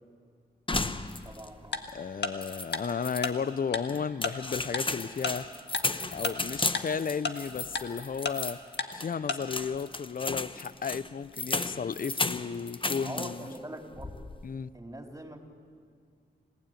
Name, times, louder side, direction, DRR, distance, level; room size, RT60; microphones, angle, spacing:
sound 1, 0.7-1.6 1.9-2.0 2.4-3.3 3.9-13.6 13.9-14.4, left 3 dB, 25° left, 0.9 m, -34 dB
voice 1, 1.2-1.9 13.0-14.1 14.7-15.5, right 1 dB, 15° right, 3.8 m, -42 dB
Tick-tock, 1.7-1.8 2.2-2.3 2.7-2.8 3.2-3.3 3.7-3.8 4.2-4.3 4.7-4.8 5.2-5.3 5.7-5.8 6.2-6.3 6.7-6.8 7.2-7.3 7.7-7.8 8.2-8.3 8.8-8.9 9.3-9.4, left 4 dB, 65° left, 1.7 m, -30 dB
voice 2, 1.9-5.5 6.1-8.6 8.9-13.4 14.4-14.7, left 6 dB, 50° left, 0.6 m, -34 dB
27.5 x 16.0 x 9.1 m
cardioid pair, 50°, 19 cm